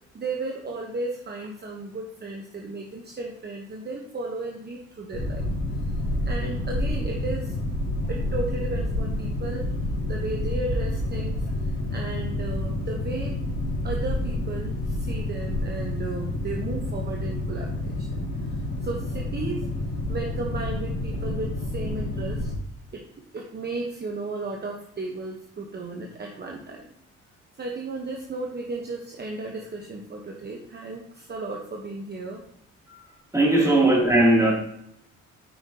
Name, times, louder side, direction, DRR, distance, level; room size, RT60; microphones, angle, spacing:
voice 1, 0.1-5.4 6.3-7.5 8.1-9.7 10.1-13.4 13.8-19.6 20.1-22.5 22.9-26.9 27.6-32.4 33.5-33.8, right 3 dB, 35° right, 1.1 m, -34 dB
Boat Water vehicle, 5.1-22.6, left 1 dB, 30° left, 3.0 m, -29 dB
voice 2, 33.3-34.5, right 1 dB, 10° right, 2.8 m, -19 dB
8.8 x 5.6 x 2.9 m
cardioid pair, 90°, 30 cm